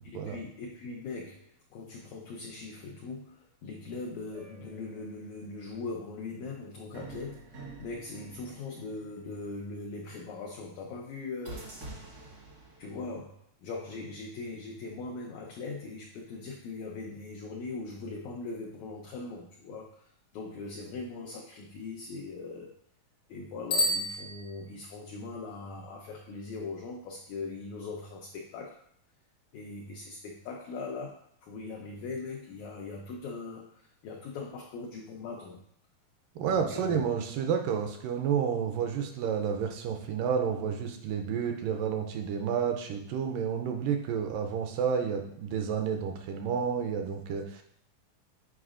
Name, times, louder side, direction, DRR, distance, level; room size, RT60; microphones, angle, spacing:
voice 1, 0.1-11.7 12.0-12.2 12.8-13.3 13.6-22.7 23.3-28.8 29.5-35.6 36.4-37.0, left 3 dB, 90° left, 0 dB, 1.6 m, -40 dB
sound 1, 4.3-5.4 6.9-9.6 11.5-13.2, right 2 dB, 60° right, 1.0 m, -47 dB
Bicycle bell, 23.6-25.0, left 1 dB, 65° left, 1.0 m, -30 dB
voice 2, 36.4-47.6, right 7 dB, 80° right, 4 dB, 2.1 m, -30 dB
7.9 x 4.9 x 2.4 m, 0.68 s
omnidirectional pair, 4.1 m